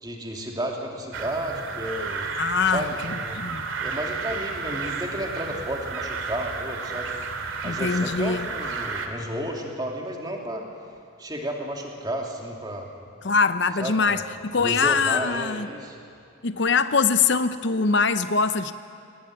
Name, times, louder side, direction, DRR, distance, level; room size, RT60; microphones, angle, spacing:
voice 1, 0.0-2.3 2.7-3.4 3.8-7.1 7.6-10.7 11.2-12.9 13.8-14.2 14.6-16.0, right 1 dB, 20° right, 1 dB, 2.8 m, -32 dB
sound 1, 1.1-9.1, right 4 dB, 75° right, 2.5 m, -32 dB
voice 2, 2.4-3.6 7.6-8.5 13.2-15.7 16.4-18.7, left 5 dB, 55° left, 12 dB, 0.7 m, -23 dB
22.5 x 18.5 x 9.9 m, 2.4 s
head